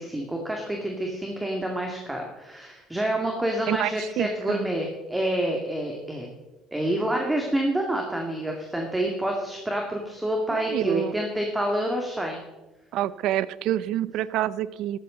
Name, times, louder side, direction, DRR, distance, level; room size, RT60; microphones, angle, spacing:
voice 1, 0.0-6.3 6.7-12.4, right 1 dB, 10° right, 1 dB, 2.2 m, -28 dB
voice 2, 3.7-4.7 10.5-11.2 12.9-15.0, right 13 dB, 70° right, 18 dB, 0.6 m, -27 dB
13.5 x 13.5 x 3.9 m, 1.1 s
supercardioid pair, 100°, 0 cm